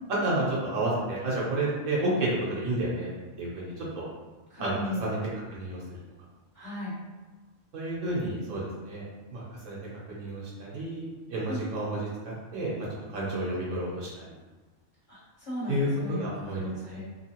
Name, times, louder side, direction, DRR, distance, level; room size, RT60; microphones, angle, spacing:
voice 1, 0.2-3.1 3.4-4.0 4.6-5.2 5.5-6.0 7.7-9.0 9.3-9.8 10.1-11.0 11.3-12.1 12.5-14.3 15.7-16.6 16.9-17.0, right 1 dB, 65° right, -6 dB, 1.1 m, -30 dB
voice 2, 4.5-5.1 6.5-6.9 11.5-11.6 15.1-17.0, left 1 dB, 30° left, -13 dB, 1.7 m, -36 dB
3.0 x 2.4 x 2.9 m, 1.3 s
omnidirectional pair, 1.5 m